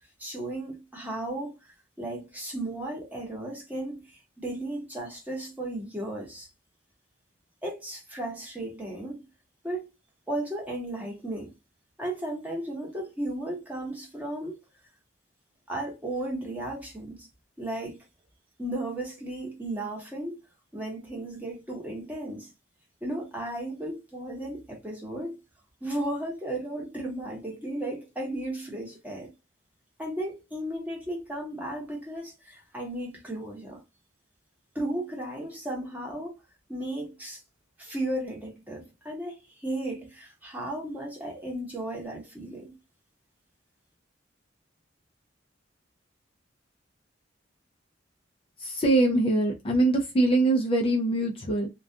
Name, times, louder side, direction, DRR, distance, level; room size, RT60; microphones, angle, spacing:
voice 1, 0.2-1.5 2.0-6.5 7.6-9.2 9.6-9.9 10.3-11.5 12.0-14.6 15.7-17.3 17.6-18.0 18.6-20.4 20.7-22.5 23.0-25.4 25.8-29.3 30.0-33.8 34.7-36.3 36.7-37.4 37.8-39.4 39.6-42.7, right 1 dB, 10° right, 0.9 m, -35 dB
voice 2, 48.6-51.7, right 2 dB, 30° left, 0.4 m, -23 dB
2.3 x 2.2 x 2.6 m
head